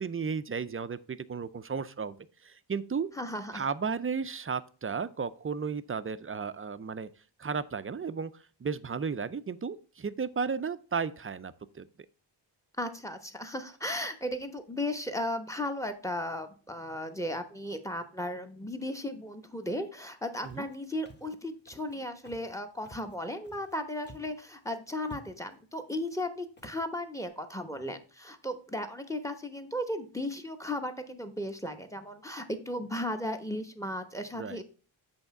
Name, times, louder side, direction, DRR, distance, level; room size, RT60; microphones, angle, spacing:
voice 1, 0.0-2.2 2.4-3.1 3.5-7.1 7.4-8.3 8.6-11.9 20.4-20.7 34.3-34.6, right 5 dB, 30° right, 0.4 m, -34 dB
voice 2, 3.1-3.6 12.8-34.6, left 1 dB, 5° left, 1.0 m, -35 dB
Walk footsteps, 20.4-20.8 21.1-21.4 21.7-22.0 22.3-22.6 22.8-23.8 24.0-24.4 24.7-24.8 25.0-25.6 26.1-26.2 26.6-26.8, equal, 25° left, 1.4 m, -52 dB
8.0 x 3.5 x 5.8 m
wide cardioid pair, 75°, 47 cm